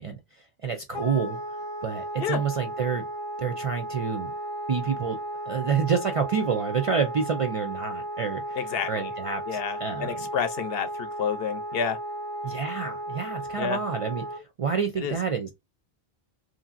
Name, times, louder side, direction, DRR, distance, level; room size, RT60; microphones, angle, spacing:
voice 1, 0.0-3.0 3.4-4.3 4.7-5.2 5.5-10.3 12.4-15.5, right 6 dB, 55° right, 0.4 m, -29 dB
Wind instrument woodwind instrument, 0.9-14.4, right 1 dB, 30° left, 0.5 m, -35 dB
voice 2, 8.6-9.1 9.5-12.0 13.6-13.8 15.0-15.1, left 7 dB, 70° left, 0.8 m, -29 dB
3.1 x 2.6 x 2.5 m
omnidirectional pair, 1.1 m